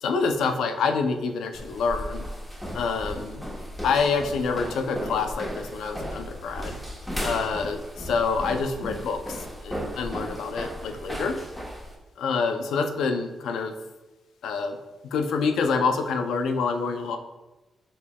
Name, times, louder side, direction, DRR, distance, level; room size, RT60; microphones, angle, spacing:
voice 1, 0.0-2.2 2.7-3.4 3.8-6.8 7.2-11.4 12.2-13.7 14.4-14.8 15.0-17.2, left 4 dB, 80° left, 5 dB, 0.4 m, -27 dB
sound 1, 1.5-11.9, equal, 10° left, 1.0 m, -35 dB
5.2 x 3.4 x 2.2 m, 1.1 s
cardioid pair, 65°, 0 cm